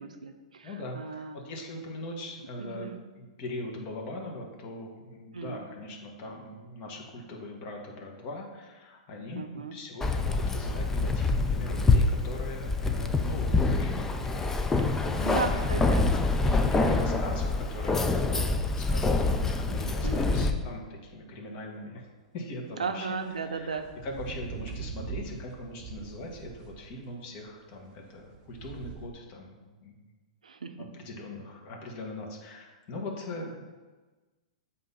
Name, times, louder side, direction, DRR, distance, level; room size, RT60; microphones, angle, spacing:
voice 1, 0.0-1.4 2.6-3.0 5.3-5.6 9.3-9.7 14.8-14.9 15.2-16.1 16.6-17.1 20.0-20.5 22.8-23.9 30.4-30.9, right 5 dB, 90° right, 7 dB, 0.6 m, -36 dB
voice 2, 0.6-15.8 16.4-22.0 22.3-30.0 30.9-33.6, left 1 dB, 40° left, 0 dB, 1.4 m, -40 dB
Keys jangling, 10.0-20.5, left 3 dB, 10° left, 0.4 m, -26 dB
sound 1, 22.6-29.1, right 5 dB, 35° right, 0.7 m, -44 dB
7.6 x 2.8 x 5.5 m, 1.3 s
hypercardioid pair, 120°, 4 cm